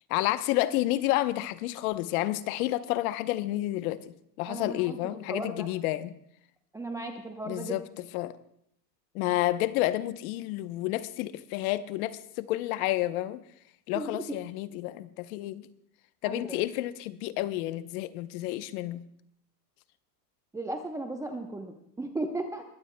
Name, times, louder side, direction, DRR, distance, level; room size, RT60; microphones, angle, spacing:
voice 1, 0.1-4.0 4.4-6.1 7.5-7.8 8.1-8.3 9.1-13.4 13.9-15.7 16.2-19.0, left 16 dB, 60° left, 0.9 m, -30 dB
voice 2, 4.5-5.7 6.7-7.8 13.9-14.2 16.2-16.5 20.5-22.6, right 2 dB, 5° right, 0.8 m, -36 dB
22.0 x 16.0 x 2.2 m
supercardioid pair, 125°, 49 cm